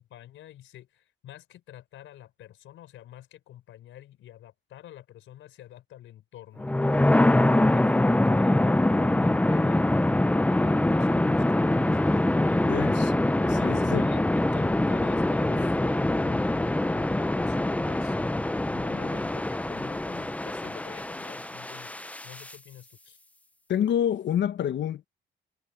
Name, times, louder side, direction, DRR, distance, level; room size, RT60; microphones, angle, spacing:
voice 1, 0.0-13.1 13.5-21.9 22.2-23.2, left 12 dB, 80° left, 4.5 m, -48 dB
sound 1, 6.6-22.5, left 1 dB, 5° left, 0.7 m, -24 dB
voice 2, 12.6-14.0 15.5-15.6 23.7-25.0, left 9 dB, 65° left, 1.3 m, -28 dB
cardioid pair, 90°, 20 cm